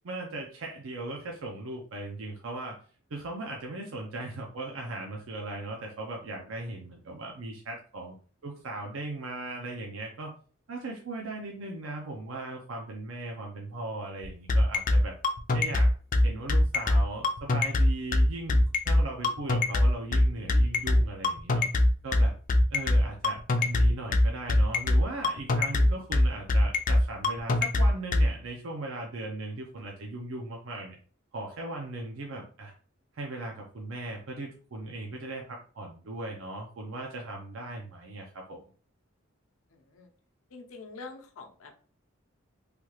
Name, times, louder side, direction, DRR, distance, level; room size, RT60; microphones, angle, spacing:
voice 1, 0.0-2.8 3.1-8.1 8.4-10.3 10.7-15.2 15.5-15.9 16.2-21.7 22.0-22.3 22.7-31.0 31.3-32.7 33.1-38.6, right 2 dB, 70° right, 0 dB, 0.6 m, -38 dB
sound 1, 14.2-28.3, left 1 dB, 40° left, 0.4 m, -22 dB
voice 2, 40.5-41.9, left 3 dB, 85° left, 3 dB, 0.6 m, -45 dB
3.3 x 2.3 x 3.0 m, 0.41 s
head